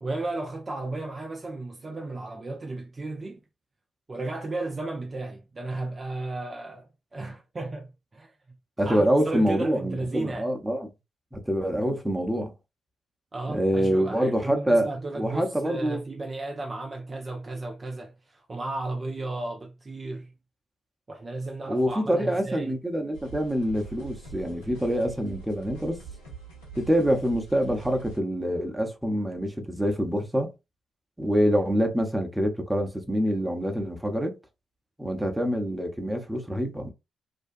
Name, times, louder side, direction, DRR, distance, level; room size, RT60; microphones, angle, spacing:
voice 1, 0.0-3.4 4.1-8.6 8.8-10.5 13.3-20.3 21.1-22.8, right 2 dB, 35° right, 0.5 m, -34 dB
voice 2, 8.8-10.9 11.3-12.5 13.5-14.9 15.1-16.0 21.7-26.0 26.8-30.5 31.2-34.4 35.0-36.9, equal, 10° right, 0.8 m, -26 dB
sound 1, 23.1-28.2, right 5 dB, 90° left, 0.7 m, -43 dB
2.6 x 2.2 x 2.4 m
hypercardioid pair, 40°, 0 cm